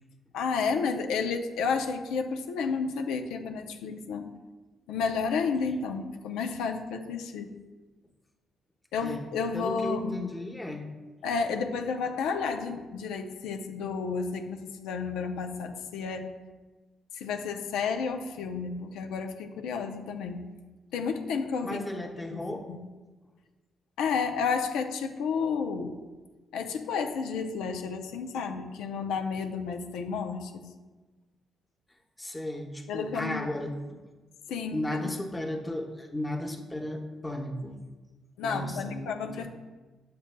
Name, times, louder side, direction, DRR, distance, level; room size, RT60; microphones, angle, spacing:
voice 1, 0.3-4.3 4.9-7.5 8.9-10.2 11.2-16.3 17.1-20.4 20.9-21.8 22.3-22.8 24.0-25.9 26.5-30.7 32.9-33.5 34.5-35.1 38.4-39.5, left 5 dB, 90° left, 4 dB, 0.5 m, -31 dB
voice 2, 9.5-10.9 21.6-22.7 32.2-34.0 34.7-37.8 38.4-39.5, left 1 dB, 10° left, 2 dB, 0.9 m, -35 dB
7.8 x 6.4 x 2.2 m, 1.2 s
cardioid pair, 75°, 0 cm